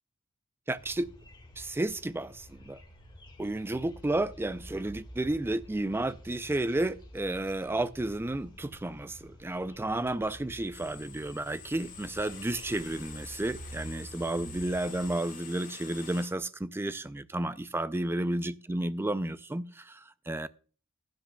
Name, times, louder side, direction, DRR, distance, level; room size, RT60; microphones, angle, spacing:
voice 1, 0.7-1.1 1.6-2.8 3.4-20.5, right 1 dB, 10° right, 0.3 m, -32 dB
sound 1, 0.8-15.1, right 1 dB, 20° left, 1.8 m, -49 dB
sound 2, 10.7-16.3, left 6 dB, 40° left, 3.9 m, -47 dB
16.0 x 10.5 x 2.2 m
head